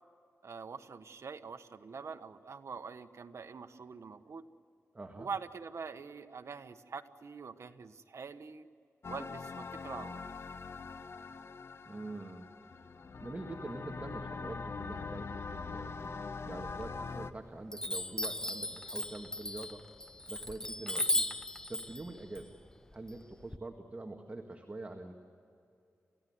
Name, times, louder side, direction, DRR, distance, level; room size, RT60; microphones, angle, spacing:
voice 1, 0.4-4.4 5.2-8.7 9.1-10.2, right 5 dB, 65° right, 8 dB, 1.2 m, -44 dB
voice 2, 4.9-5.3 11.8-12.5 13.2-15.9 16.4-19.9 20.3-21.3 21.7-22.5 22.9-25.1, right 2 dB, 25° right, 3 dB, 1.9 m, -45 dB
sound 1, 9.0-17.3, left 4 dB, 55° left, 1.0 m, -43 dB
Chime, 16.7-17.3 17.7-23.6, left 1 dB, 10° left, 0.7 m, -36 dB
28.0 x 16.0 x 9.5 m, 2.6 s
wide cardioid pair, 90°, 5 cm